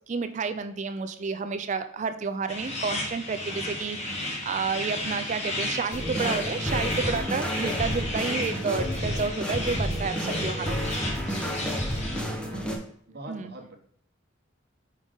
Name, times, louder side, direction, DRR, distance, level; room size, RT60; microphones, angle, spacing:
voice 1, 0.1-11.0 13.3-13.5, right 5 dB, 35° right, 10 dB, 0.4 m, -30 dB
sound 1, 2.5-12.2, left 1 dB, 35° left, 1.1 m, -33 dB
sound 2, 5.9-12.8, equal, 5° left, 0.8 m, -31 dB
voice 2, 12.1-12.7 13.1-13.8, right 2 dB, 50° right, 2 dB, 1.1 m, -43 dB
5.4 x 5.0 x 3.7 m, 0.62 s
head